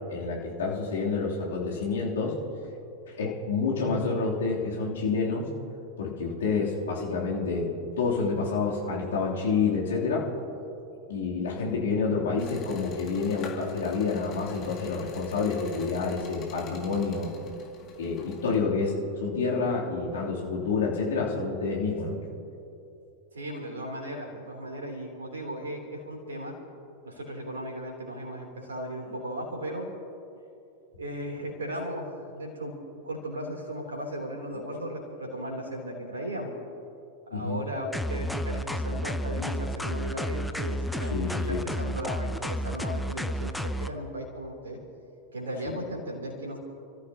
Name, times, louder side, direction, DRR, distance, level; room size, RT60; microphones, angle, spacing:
voice 1, 0.1-2.3 3.2-5.5 6.0-7.7 8.0-10.3 11.1-17.3 18.0-22.2 37.3-37.6 41.1-41.6 45.6-45.7, left 4 dB, 60° left, -4 dB, 3.2 m, -28 dB
sound 1, 12.4-18.6, left 5 dB, 35° left, 2.4 m, -46 dB
voice 2, 23.3-26.5 27.0-29.9 31.0-32.7 33.0-36.5 37.3-41.2 41.5-44.8 45.3-46.6, equal, 70° right, 0 dB, 3.3 m, -36 dB
sound 2, 37.9-43.9, equal, ahead, 0.6 m, -31 dB
29.0 x 14.0 x 2.9 m, 2.7 s
figure-of-eight pair, 90°, 0 cm